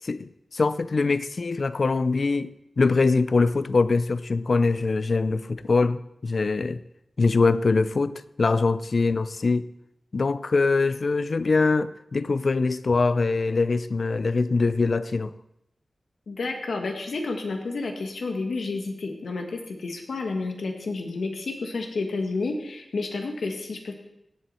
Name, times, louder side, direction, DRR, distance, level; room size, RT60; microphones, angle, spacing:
voice 1, 0.0-6.8 7.2-9.7 10.1-15.3, left 3 dB, 65° left, 0.5 m, -23 dB
voice 2, 16.3-23.9, left 3 dB, 85° left, 1.7 m, -30 dB
17.0 x 7.8 x 4.3 m
cardioid pair, 45°, 0 cm